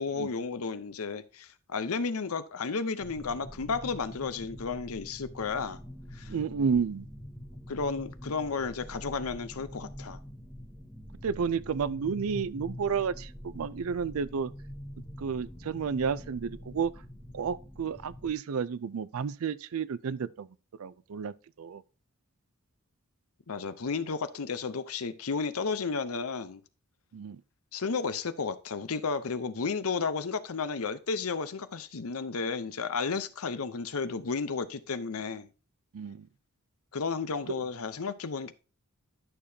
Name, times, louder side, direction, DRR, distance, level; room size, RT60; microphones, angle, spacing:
voice 1, 0.0-5.8 6.1-6.3 7.7-10.2 23.5-26.6 27.7-35.5 36.9-38.5, left 4 dB, 70° left, 0.7 m, -33 dB
sound 1, 3.0-18.3, equal, 5° right, 1.8 m, -45 dB
voice 2, 6.3-7.1 11.2-14.5 15.2-16.9 17.3-20.5 20.8-21.8 27.1-27.4 35.9-36.3 37.5-37.6, right 6 dB, 65° right, 0.4 m, -31 dB
11.0 x 6.7 x 2.8 m
head